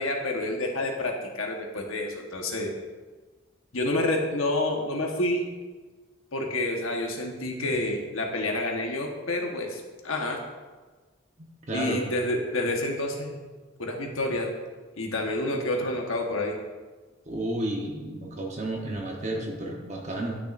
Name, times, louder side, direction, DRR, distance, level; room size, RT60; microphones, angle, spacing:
voice 1, 0.0-2.7 3.7-5.5 6.3-10.4 11.7-13.4 13.8-14.5 15.0-16.6, left 1 dB, 85° left, 2 dB, 1.3 m, -28 dB
voice 2, 11.7-12.1 17.3-20.4, right 1 dB, 35° right, -1 dB, 1.0 m, -31 dB
12.0 x 6.3 x 2.6 m, 1.3 s
head